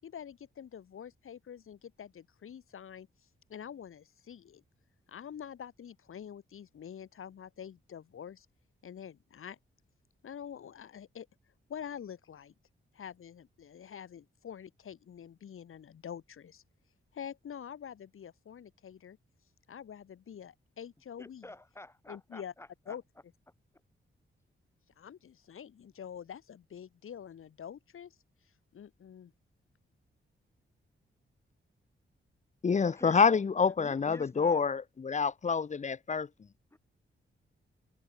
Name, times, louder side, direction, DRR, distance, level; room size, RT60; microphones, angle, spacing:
voice 1, 0.0-3.1 3.5-4.6 5.1-8.5 8.8-9.6 10.2-11.3 11.7-12.5 12.9-16.6 17.1-19.2 19.7-21.5 22.1-22.5 22.9-23.0 25.0-28.2 28.7-29.3, left 8 dB, 80° left, 7.2 m, -46 dB
voice 2, 21.2-23.0 32.9-33.4 33.8-34.6 36.7-36.8, left 2 dB, 10° left, 3.9 m, -49 dB
voice 3, 32.6-36.3, left 5 dB, 35° left, 1.2 m, -27 dB
wide cardioid pair, 155°, 21 cm